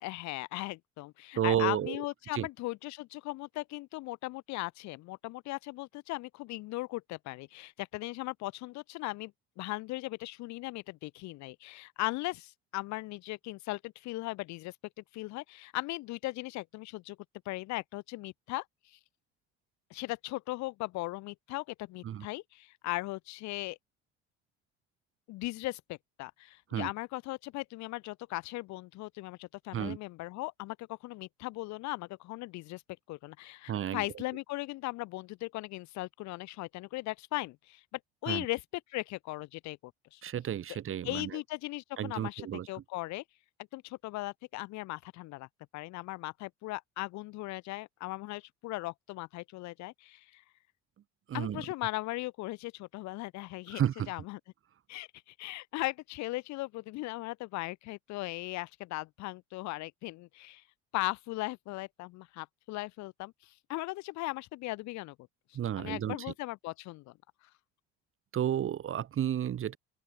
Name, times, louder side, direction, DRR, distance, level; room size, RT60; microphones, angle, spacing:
voice 1, 0.0-9.3 9.6-14.7 15.1-17.2 17.4-19.0 19.9-23.8 25.3-32.8 33.1-38.6 38.9-40.2 41.0-43.2 43.7-45.5 45.7-50.4 51.3-53.8 54.1-54.4 54.9-60.6 60.9-65.2 65.8-67.1, left 20 dB, 65° left, 1.0 m, -38 dB
voice 2, 1.3-2.0 2.3-2.5 22.0-22.3 26.7-26.9 29.7-30.0 33.7-34.1 38.3-38.4 40.2-41.4 42.0-42.7 51.3-51.6 53.7-54.1 65.5-66.2 68.3-69.8, right 10 dB, 45° right, 1.3 m, -32 dB
open air
hypercardioid pair, 70°, 31 cm